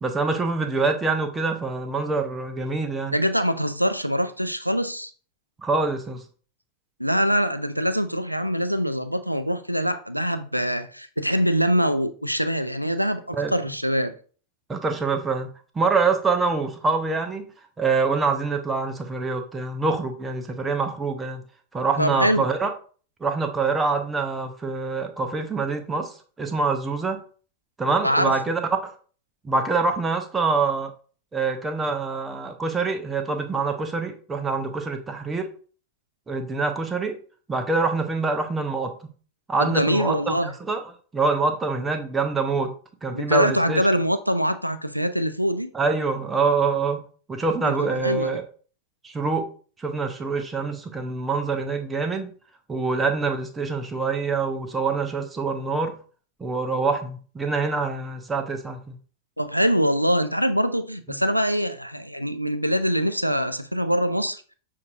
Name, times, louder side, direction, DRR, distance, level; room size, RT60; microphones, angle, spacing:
voice 1, 0.0-3.2 5.6-6.2 13.3-13.6 14.7-15.5 15.8-17.4 17.8-21.4 21.7-22.7 23.2-26.1 26.4-27.2 27.8-28.9 29.4-30.9 31.3-35.5 36.3-37.2 37.5-38.9 39.5-40.4 40.7-40.8 41.1-42.7 43.0-43.8 45.7-47.0 47.3-48.4 49.0-49.5 49.8-52.3 52.7-56.0 56.4-58.9, right 4 dB, 15° right, 0.7 m, -25 dB
voice 2, 3.1-5.1 7.0-14.1 22.0-22.4 28.0-28.3 39.6-40.5 43.1-45.7 47.6-48.4 59.4-64.5, equal, 90° right, 0.3 m, -24 dB
6.7 x 2.6 x 2.5 m
figure-of-eight pair, 90°, 0 cm